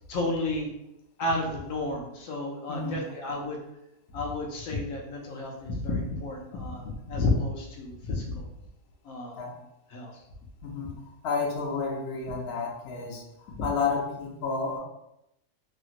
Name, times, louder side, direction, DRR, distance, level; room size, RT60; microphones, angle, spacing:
voice 1, 0.1-0.7 1.2-3.6 4.1-8.4 9.0-9.5 9.9-10.1 13.6-13.7, left 2 dB, 75° left, 0 dB, 1.0 m, -31 dB
voice 2, 2.7-3.0 9.4-9.5 10.6-10.9 11.2-13.2 13.6-14.8, left 4 dB, 60° left, 0 dB, 0.7 m, -30 dB
2.9 x 2.8 x 2.4 m, 0.86 s
omnidirectional pair, 1.5 m